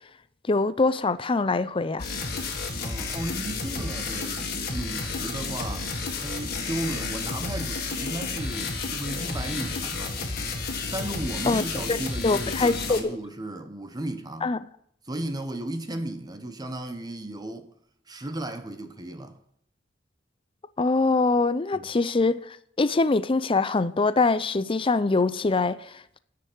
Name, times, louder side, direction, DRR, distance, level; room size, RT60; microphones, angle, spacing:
voice 1, 0.5-2.1 11.5-11.6 11.9-12.0 12.2-13.2 14.4-14.6 20.8-26.2, left 3 dB, 30° left, 0.5 m, -24 dB
sound 1, 2.0-13.0, left 4 dB, 55° left, 1.9 m, -31 dB
voice 2, 2.8-5.9 6.2-10.2 10.9-14.5 15.0-17.7 18.1-19.4 21.7-21.9, right 1 dB, 20° right, 0.9 m, -35 dB
10.0 x 6.8 x 9.2 m
head